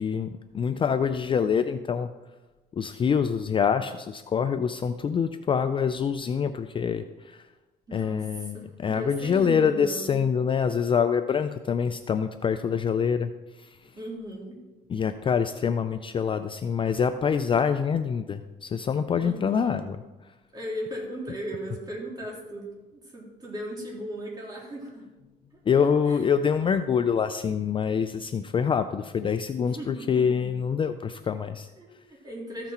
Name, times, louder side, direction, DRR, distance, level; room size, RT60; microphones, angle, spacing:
voice 1, 0.0-2.1 2.8-7.4 7.9-13.3 14.9-20.0 25.7-31.7, left 7 dB, 30° left, 9 dB, 0.4 m, -25 dB
voice 2, 7.9-10.2 13.9-14.6 19.2-19.9 20.5-25.1 25.8-26.2 29.6-30.5 31.8-32.7, right 1 dB, 25° right, -3 dB, 3.3 m, -37 dB
14.0 x 6.0 x 4.3 m, 1.1 s
cardioid pair, 110°, 17 cm